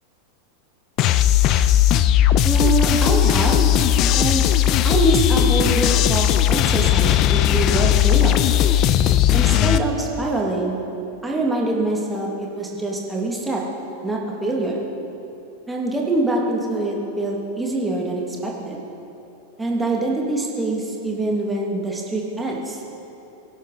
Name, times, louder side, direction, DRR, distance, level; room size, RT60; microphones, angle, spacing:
sound 1, 1.0-9.8, left 11 dB, 35° left, 0.6 m, -17 dB
voice 1, 2.4-3.7 4.2-4.4 4.8-8.6 9.3-10.8 11.2-13.6 14.0-14.8 15.7-18.8 19.6-22.8, right 2 dB, 10° right, -2 dB, 2.7 m, -24 dB
24.5 x 11.0 x 4.3 m, 2.8 s
figure-of-eight pair, 90°, 0 cm